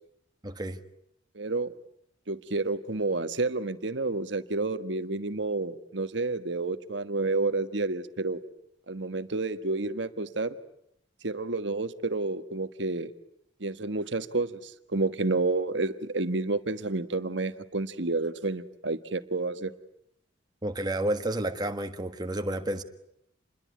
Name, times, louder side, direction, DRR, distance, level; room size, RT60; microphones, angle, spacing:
voice 1, 0.4-0.8 20.6-22.8, right 1 dB, 20° right, 1.5 m, -30 dB
voice 2, 1.3-1.7 2.3-8.4 8.9-10.6 11.2-13.1 13.6-19.7, right 3 dB, 70° right, 1.4 m, -30 dB
28.0 x 21.5 x 9.4 m
head